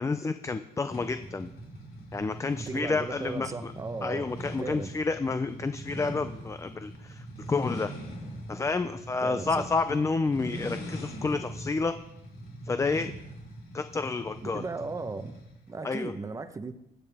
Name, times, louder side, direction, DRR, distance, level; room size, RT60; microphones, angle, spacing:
voice 1, 0.0-1.5 2.1-3.7 4.0-7.9 8.5-11.9 12.6-13.1 13.7-14.6 15.8-16.1, left 4 dB, 15° left, 0.5 m, -30 dB
sound 1, 0.9-15.6, equal, 65° left, 4.3 m, -42 dB
voice 2, 2.6-4.3 4.6-4.9 9.2-9.7 14.4-15.3 15.7-16.8, right 3 dB, 20° right, 0.9 m, -36 dB
15.5 x 10.0 x 3.5 m
cardioid pair, 110°, 17 cm